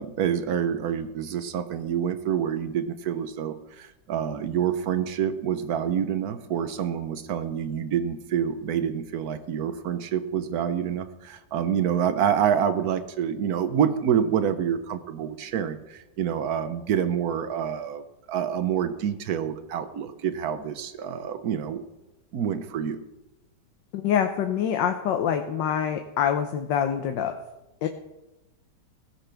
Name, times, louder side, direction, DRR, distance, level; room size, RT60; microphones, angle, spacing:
voice 1, 0.0-21.8 22.3-23.0, right 8 dB, 60° right, 11 dB, 1.3 m, -27 dB
voice 2, 23.9-27.4 27.8-27.9, left 8 dB, 80° left, 6 dB, 1.5 m, -25 dB
17.0 x 15.0 x 3.4 m, 1.0 s
omnidirectional pair, 1.9 m